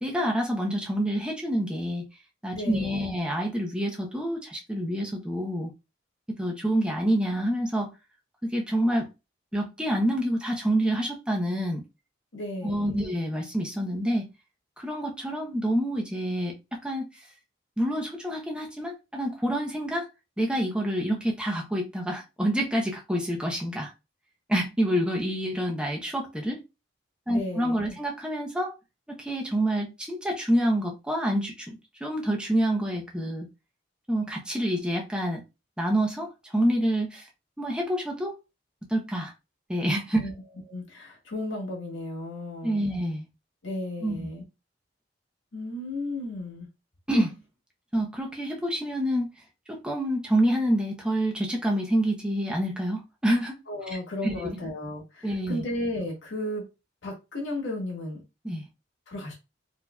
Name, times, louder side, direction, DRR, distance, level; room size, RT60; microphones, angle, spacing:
voice 1, 0.0-2.0 2.4-5.7 6.4-7.9 8.4-9.1 9.5-11.8 12.6-14.2 14.8-16.5 16.8-17.1 17.8-20.1 20.4-23.9 24.5-26.6 27.3-28.7 29.1-33.5 34.1-35.4 35.8-37.3 37.6-38.3 38.9-39.3 39.7-40.3 42.6-43.3 44.0-44.3 47.1-47.3 47.9-49.3 49.7-53.6 54.2-54.6 55.2-55.6 58.4-58.6, right 1 dB, 5° right, 0.7 m, -27 dB
voice 2, 2.5-3.1 12.3-13.0 27.3-28.0 40.2-40.3 40.7-42.8 43.6-44.4 45.5-46.7 53.7-56.6 57.0-58.2 59.1-59.3, left 1 dB, 90° left, 1.6 m, -34 dB
4.4 x 2.8 x 2.2 m
head